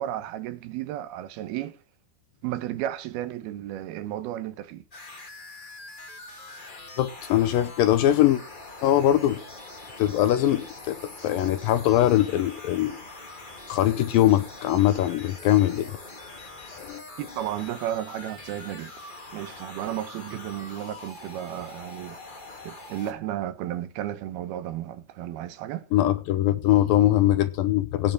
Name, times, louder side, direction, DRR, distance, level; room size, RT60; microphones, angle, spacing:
voice 1, 0.0-1.8 2.4-4.8 17.2-18.9 19.3-22.2 22.6-25.9, right 12 dB, 80° right, 2.8 m, -33 dB
sound 1, 4.9-23.1, left 2 dB, 50° left, 0.5 m, -43 dB
voice 2, 7.0-8.4 8.8-9.4 10.0-13.0 13.7-16.0 16.7-17.0 25.9-28.1, left 13 dB, 75° left, 2.3 m, -22 dB
16.5 x 7.0 x 4.8 m
omnidirectional pair, 4.5 m